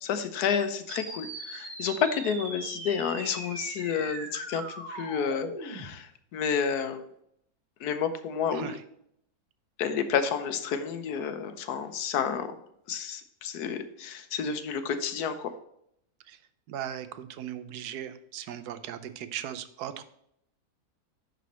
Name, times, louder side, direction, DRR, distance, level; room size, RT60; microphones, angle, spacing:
voice 1, 0.0-4.6 4.9-7.0 7.8-8.7 9.8-12.5 12.9-15.5, left 7 dB, 85° left, 9 dB, 1.3 m, -30 dB
sound 1, 0.9-5.9, right 2 dB, 50° right, 1.8 m, -39 dB
voice 2, 8.5-8.8 16.3-16.4 16.7-20.0, right 10 dB, 85° right, 11 dB, 1.2 m, -38 dB
10.0 x 4.2 x 4.1 m, 0.73 s
omnidirectional pair, 1.6 m